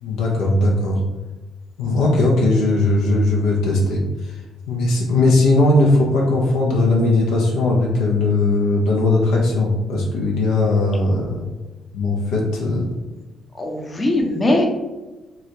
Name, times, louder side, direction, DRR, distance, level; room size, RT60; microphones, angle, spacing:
voice 1, 0.0-1.0 1.8-4.4 4.7-11.5 11.9-12.9, left 2 dB, 70° left, -2 dB, 0.5 m, -18 dB
voice 2, 13.6-14.7, left 1 dB, 30° left, 1 dB, 0.7 m, -20 dB
2.9 x 2.4 x 2.8 m, 1.1 s
hypercardioid pair, 45°, 0 cm